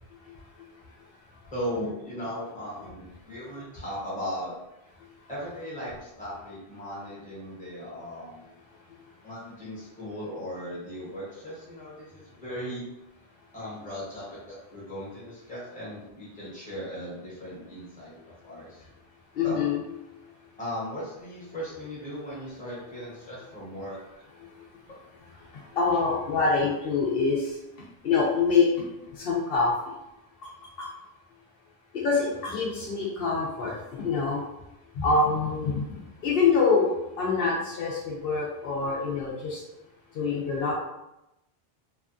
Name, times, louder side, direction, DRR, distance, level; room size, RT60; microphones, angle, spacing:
voice 1, 1.5-4.5 5.3-8.4 9.2-12.8 13.5-18.2 18.4-18.8 19.4-19.6 20.6-24.0, equal, 10° left, -8 dB, 0.9 m, -37 dB
voice 2, 19.4-19.8 25.8-27.4 28.0-28.7 29.2-29.7 30.8-30.9 32.0-34.4 35.0-35.9 36.2-36.9 37.2-39.6 40.2-40.7, left 4 dB, 70° left, -4 dB, 0.8 m, -25 dB
2.6 x 2.2 x 2.5 m, 0.91 s
omnidirectional pair, 1.0 m